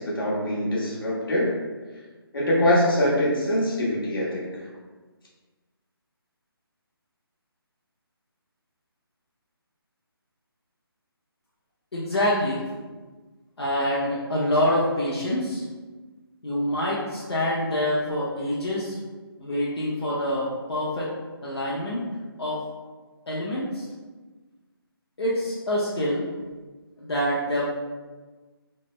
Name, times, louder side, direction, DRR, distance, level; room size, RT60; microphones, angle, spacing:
voice 1, 0.0-1.5 2.3-4.5, left 1 dB, 60° left, -6 dB, 1.2 m, -23 dB
voice 2, 11.9-12.6 13.6-15.6 16.4-19.0 19.4-21.1 21.4-22.0 22.4-22.6 23.3-23.9 25.2-26.3 27.0-27.6, left 1 dB, 85° left, -7 dB, 0.8 m, -26 dB
3.2 x 2.0 x 3.1 m, 1.3 s
hypercardioid pair, 170°, 13 cm